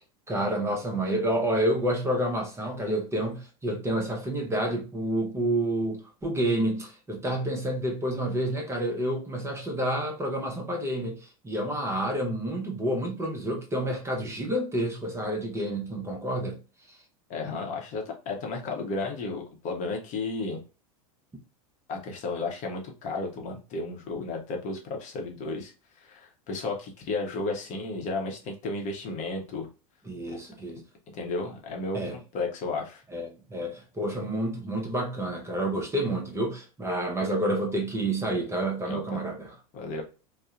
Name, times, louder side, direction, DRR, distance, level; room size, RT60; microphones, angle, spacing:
voice 1, 0.3-16.6 30.1-30.8 31.9-32.1 33.1-39.5, right 1 dB, 15° right, 0.6 m, -29 dB
voice 2, 17.3-20.6 21.9-25.7 26.0-29.7 31.1-33.0 38.9-39.2 39.7-40.0, left 3 dB, 40° left, 0.7 m, -33 dB
2.7 x 2.0 x 2.4 m
hypercardioid pair, 95°, 19 cm